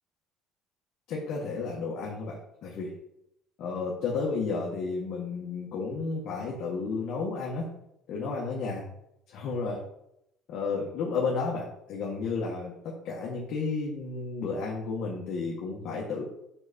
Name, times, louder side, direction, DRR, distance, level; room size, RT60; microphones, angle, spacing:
voice 1, 1.1-3.0 3.6-7.7 8.1-8.9 9.3-9.8 10.5-16.2, left 4 dB, 55° left, -4 dB, 1.7 m, -32 dB
7.8 x 5.1 x 4.4 m, 0.79 s
cardioid pair, 150°, 0 cm